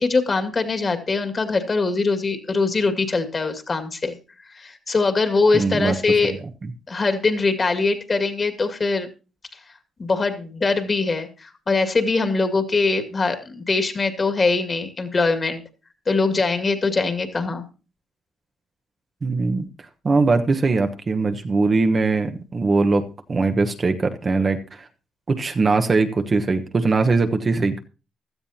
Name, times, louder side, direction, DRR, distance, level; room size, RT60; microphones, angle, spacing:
voice 1, 0.0-4.1 4.5-6.3 6.9-9.1 10.0-15.6 16.1-17.6, left 3 dB, 35° left, 6 dB, 2.3 m, -22 dB
voice 2, 5.5-5.9 6.2-6.4 19.2-19.7 20.0-24.9 25.3-27.8, right 3 dB, 35° right, 6 dB, 1.2 m, -21 dB
16.0 x 12.5 x 2.9 m, 0.33 s
cardioid pair, 90°, 0 cm